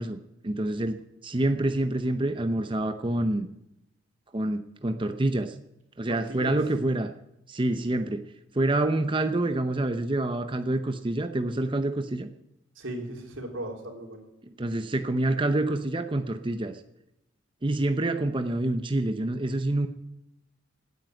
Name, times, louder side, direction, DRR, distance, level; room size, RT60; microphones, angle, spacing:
voice 1, 0.0-3.5 4.3-5.6 6.0-7.1 7.5-8.2 8.5-12.3 14.4-16.8 17.6-19.9, right 2 dB, 25° right, 8 dB, 0.7 m, -27 dB
voice 2, 12.8-14.2, right 1 dB, 85° right, 2 dB, 3.6 m, -36 dB
17.5 x 9.2 x 7.8 m, 0.87 s
head